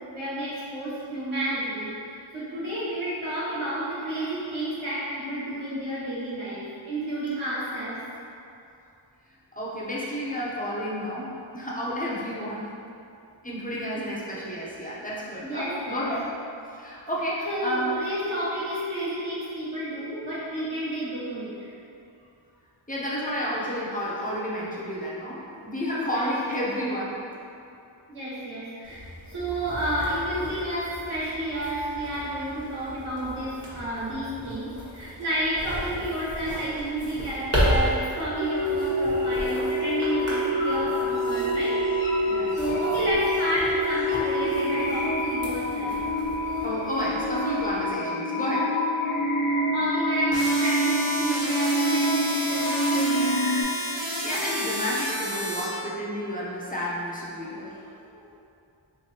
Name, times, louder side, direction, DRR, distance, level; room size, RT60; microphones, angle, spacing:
voice 1, 0.0-8.0 13.7-13.8 15.4-16.1 17.4-21.7 25.5-25.6 26.0-26.3 28.1-41.8 42.2-46.0 47.8-47.9 49.4-53.5 57.4-57.7 58.1-58.4, right 1 dB, 80° right, -11 dB, 1.4 m, -31 dB
voice 2, 9.5-12.8 13.4-16.3 16.7-17.9 22.9-27.2 42.3-43.1 46.6-48.9 54.0-57.8, equal, 15° left, -7 dB, 0.7 m, -31 dB
sound 1, 28.8-47.9, equal, 30° right, 1.0 m, -34 dB
sound 2, 38.4-53.6, equal, 80° left, 1.1 m, -26 dB
sound 3, 50.3-55.6, equal, 60° right, 1.0 m, -31 dB
3.4 x 3.3 x 2.8 m, 2.6 s
wide cardioid pair, 45°, 48 cm